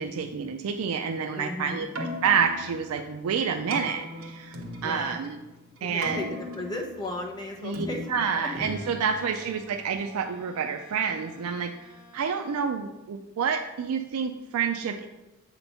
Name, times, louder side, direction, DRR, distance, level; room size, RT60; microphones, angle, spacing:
voice 1, 0.0-5.4 5.8-6.4 7.6-15.1, right 6 dB, 85° right, 6 dB, 0.4 m, -29 dB
voice 2, 1.3-1.9 4.8-5.2 5.8-8.9, left 2 dB, 20° left, 0 dB, 0.9 m, -36 dB
Keyboard (musical), 1.8-9.9, left 1 dB, 65° right, 1.0 m, -39 dB
Bowed string instrument, 8.3-12.8, equal, 35° left, 1.2 m, -52 dB
7.7 x 3.0 x 5.4 m, 1.0 s
head